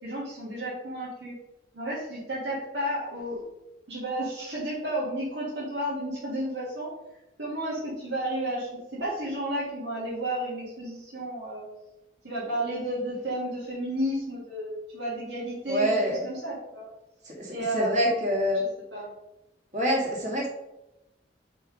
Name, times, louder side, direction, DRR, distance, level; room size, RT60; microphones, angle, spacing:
voice 1, 0.0-1.3 1.7-3.4 3.9-6.9 7.4-11.6 12.2-16.9 17.5-18.2 18.5-18.7 18.9-19.1, right 1 dB, 85° right, -9 dB, 2.2 m, -32 dB
voice 2, 15.7-16.2 17.3-18.6 19.7-20.5, equal, 40° right, -2 dB, 2.0 m, -26 dB
4.9 x 4.7 x 5.2 m, 0.93 s
head